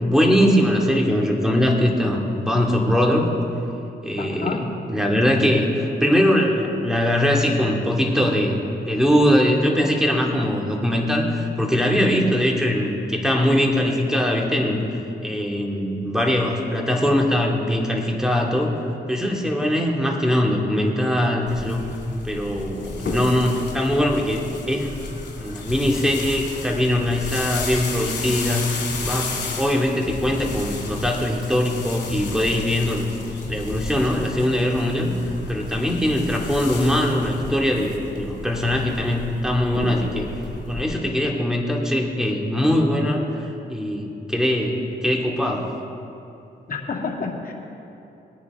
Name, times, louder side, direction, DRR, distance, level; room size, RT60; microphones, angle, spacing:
voice 1, 0.0-3.3 4.0-18.7 19.1-21.8 22.2-25.0 25.4-33.1 33.5-35.1 35.5-40.3 40.7-45.7, equal, 5° right, 0 dB, 2.3 m, -21 dB
voice 2, 4.2-4.6 36.4-36.6 46.7-47.5, left 4 dB, 55° left, -1 dB, 2.2 m, -29 dB
sound 1, 21.5-40.8, left 3 dB, 70° left, 2.6 m, -33 dB
20.5 x 9.8 x 3.7 m, 2.9 s
cardioid pair, 70°, 18 cm